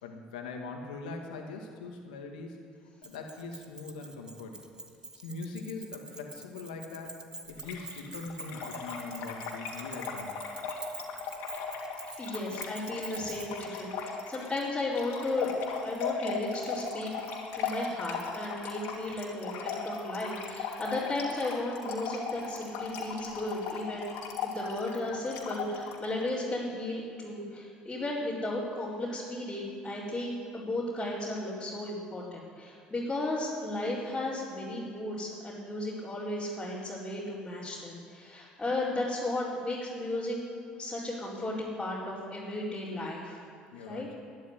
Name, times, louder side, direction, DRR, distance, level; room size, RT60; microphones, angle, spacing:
voice 1, 0.0-2.6 3.0-4.6 5.2-7.2 7.5-10.4 43.7-44.1, left 3 dB, 85° left, 2 dB, 2.0 m, -41 dB
Keys jangling, 3.0-13.6, right 2 dB, 20° right, 1.6 m, -46 dB
Trickle dribble / Fill (with liquid), 7.6-26.1, left 5 dB, 70° left, 2.6 m, -38 dB
voice 2, 12.2-15.5 15.8-17.1 17.5-24.1 24.4-40.4 40.8-43.4 43.8-44.1, left 2 dB, 15° left, -9 dB, 4.5 m, -34 dB
12.5 x 10.5 x 9.7 m, 2.4 s
hypercardioid pair, 65°, 4 cm